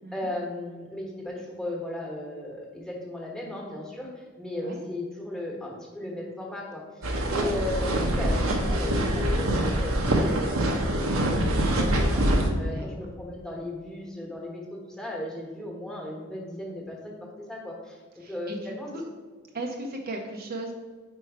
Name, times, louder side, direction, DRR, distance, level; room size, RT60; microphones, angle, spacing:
voice 1, 0.1-18.9, left 1 dB, 5° left, -3 dB, 1.1 m, -36 dB
sound 1, 7.0-12.5, right 1 dB, 80° right, 0.8 m, -24 dB
voice 2, 18.2-19.0 19.5-20.7, right 2 dB, 45° right, 2 dB, 0.6 m, -36 dB
4.5 x 4.5 x 4.6 m, 1.5 s
head